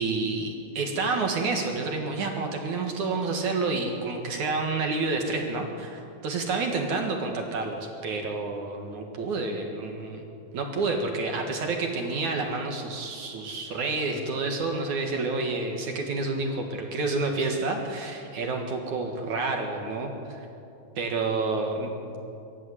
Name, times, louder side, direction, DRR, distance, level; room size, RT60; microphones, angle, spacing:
voice 1, 0.0-10.2 10.5-20.5 21.0-21.9, right 3 dB, 55° right, 3 dB, 2.5 m, -29 dB
24.0 x 13.5 x 9.8 m, 2.7 s
omnidirectional pair, 5.2 m